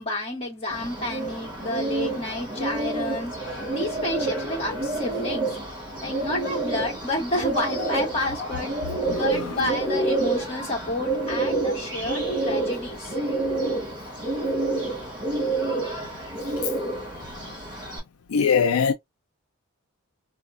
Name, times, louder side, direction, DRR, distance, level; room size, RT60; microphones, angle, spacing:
voice 1, 0.0-5.5 6.0-8.7 9.1-13.2, left 1 dB, 25° left, 1.5 m, -30 dB
Bird, 0.7-18.0, right 2 dB, 20° right, 1.7 m, -28 dB
voice 2, 9.1-9.5 16.6-16.7 18.3-18.9, left 6 dB, 75° left, 0.4 m, -22 dB
4.1 x 2.3 x 2.4 m
head